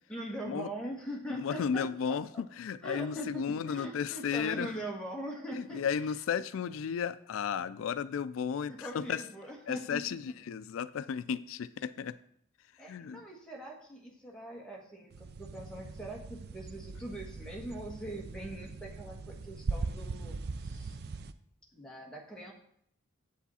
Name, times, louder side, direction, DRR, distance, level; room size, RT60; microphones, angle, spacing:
voice 1, 0.1-1.8 2.1-2.2 2.8-5.8 8.8-10.0 12.8-21.0 21.7-22.5, right 1 dB, 5° left, -2 dB, 1.4 m, -42 dB
voice 2, 1.3-4.7 5.5-9.3 9.7-12.2 12.6-13.2, left 7 dB, 85° left, 15 dB, 0.3 m, -34 dB
sound 1, 15.1-21.3, right 3 dB, 50° right, 0.4 m, -40 dB
8.4 x 8.0 x 4.2 m, 0.68 s
head